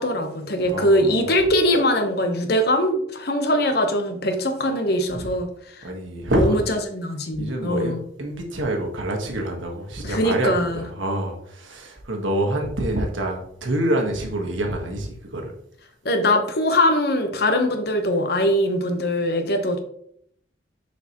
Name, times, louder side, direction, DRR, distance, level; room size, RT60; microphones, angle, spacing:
voice 1, 0.0-5.5 6.4-8.0 10.0-10.8 16.0-19.8, left 1 dB, 55° left, 6 dB, 1.0 m, -22 dB
voice 2, 0.6-1.1 5.2-5.3 5.8-6.7 7.3-15.5, right 1 dB, 80° right, 2 dB, 1.4 m, -26 dB
6.5 x 5.9 x 3.0 m, 0.68 s
head